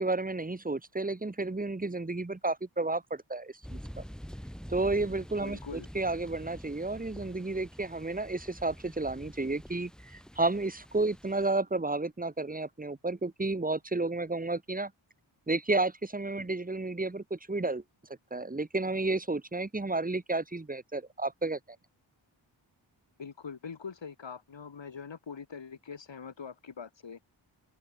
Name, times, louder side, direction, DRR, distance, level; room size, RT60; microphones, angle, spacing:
voice 1, 0.0-3.8 4.7-14.9 15.5-17.8 18.3-21.6, right 2 dB, 15° right, 1.2 m, -31 dB
sound 1, 3.6-11.5, equal, ahead, 1.3 m, -46 dB
voice 2, 5.4-5.9 23.2-27.2, left 6 dB, 65° left, 1.9 m, -43 dB
open air
wide cardioid pair, 60°, 48 cm